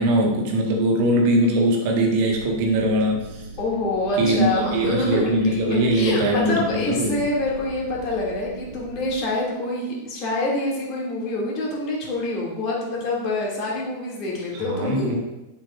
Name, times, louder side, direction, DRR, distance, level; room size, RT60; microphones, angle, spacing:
voice 1, 0.0-3.4 4.2-7.2 14.6-15.2, right 1 dB, 50° right, 1 dB, 1.6 m, -21 dB
sound 1, 2.3-9.2, right 3 dB, 90° right, 0.9 m, -40 dB
voice 2, 3.6-15.2, left 2 dB, 40° left, -4 dB, 2.7 m, -26 dB
8.4 x 7.2 x 2.6 m, 1.0 s
figure-of-eight pair, 90°, 0 cm